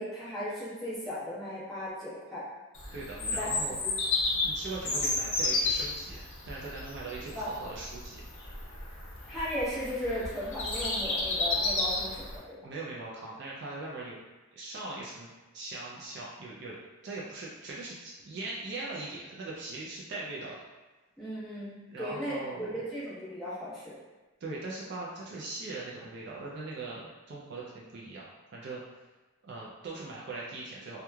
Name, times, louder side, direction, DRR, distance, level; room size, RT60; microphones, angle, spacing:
voice 1, 0.0-2.4 3.2-3.5 3.8-3.9 4.2-4.4 7.3-7.5 9.3-12.4 21.2-24.0, equal, ahead, -12 dB, 0.9 m, -36 dB
Bird vocalization bird call bird song, 2.8-12.4, left 2 dB, 60° left, 0.6 m, -32 dB
voice 2, 2.9-3.8 4.4-8.2 12.6-14.2 14.5-16.8 17.0-20.6 21.9-22.8 24.4-28.8 29.4-31.0, right 2 dB, 50° right, -4 dB, 0.3 m, -40 dB
3.0 x 2.2 x 2.2 m, 1.2 s
head